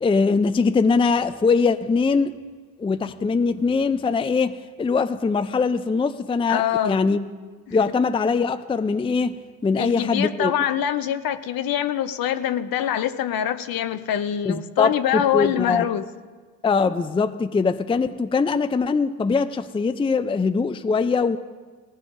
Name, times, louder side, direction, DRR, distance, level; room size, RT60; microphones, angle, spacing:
voice 1, 0.0-2.4 2.8-7.2 7.7-10.5 14.5-15.9 16.6-21.4, left 4 dB, 15° left, 10 dB, 0.5 m, -22 dB
voice 2, 6.5-7.0 7.7-7.8 9.8-16.0, left 10 dB, 60° left, 10 dB, 0.9 m, -24 dB
18.0 x 14.5 x 2.7 m, 1.4 s
hypercardioid pair, 65°, 41 cm